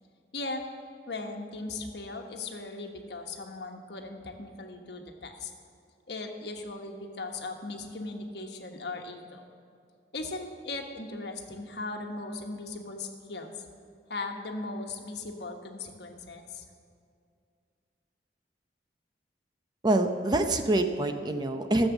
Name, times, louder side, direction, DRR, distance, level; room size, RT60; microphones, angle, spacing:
voice 1, 1.1-5.5 6.1-9.5 10.1-13.6 14.1-16.6, left 3 dB, 65° left, 3 dB, 1.2 m, -38 dB
voice 2, 19.8-21.9, right 2 dB, 25° right, 6 dB, 0.6 m, -25 dB
14.0 x 7.3 x 7.1 m, 2.4 s
head